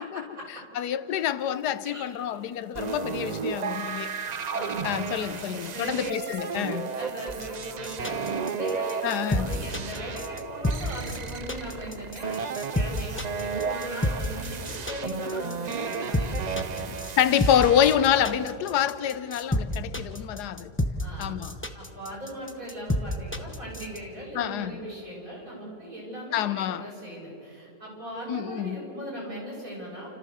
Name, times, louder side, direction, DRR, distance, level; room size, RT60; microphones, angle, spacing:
voice 1, 0.0-0.6 1.1-1.3 1.8-2.4 4.5-6.1 6.5-16.9 21.0-21.5 21.7-30.1, equal, 55° right, 7.1 m, -39 dB
voice 2, 0.7-4.1 4.8-7.0 9.0-9.5 16.9-20.7 21.2-21.6 24.3-24.8 26.3-26.8 28.3-28.8, left 10 dB, 85° left, 1.3 m, -27 dB
sound 1, 2.8-18.5, right 5 dB, 85° right, 0.3 m, -34 dB
sound 2, 7.3-24.0, left 1 dB, 10° left, 0.7 m, -29 dB
29.5 x 14.5 x 6.8 m
omnidirectional pair, 1.7 m